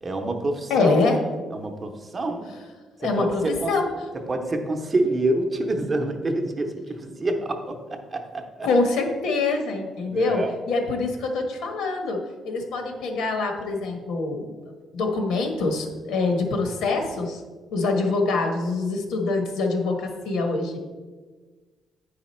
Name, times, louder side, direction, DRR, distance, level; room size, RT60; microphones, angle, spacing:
voice 1, 0.0-0.9 1.5-2.5 3.0-3.7 4.3-8.5 10.1-10.5, right 2 dB, 25° right, 4 dB, 0.7 m, -27 dB
voice 2, 0.7-1.2 3.0-3.9 8.6-14.5 14.9-17.4 17.7-20.8, left 3 dB, 90° left, 3 dB, 1.3 m, -25 dB
9.2 x 4.9 x 4.3 m, 1.4 s
cardioid pair, 170°, 0 cm